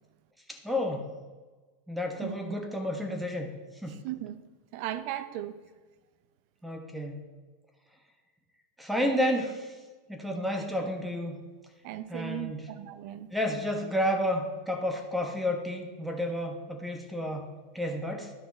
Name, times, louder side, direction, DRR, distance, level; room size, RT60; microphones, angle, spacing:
voice 1, 0.5-1.1 1.9-3.5 3.8-4.0 6.6-7.2 8.8-9.8 10.1-11.4 12.1-12.7 13.3-17.5 17.7-18.3, left 1 dB, 5° right, 4 dB, 1.1 m, -31 dB
voice 2, 2.2-2.5 3.9-4.4 4.7-5.5 11.8-13.3, right 13 dB, 60° right, 13 dB, 0.6 m, -37 dB
11.5 x 4.8 x 4.1 m, 1.3 s
hypercardioid pair, 100°, 0 cm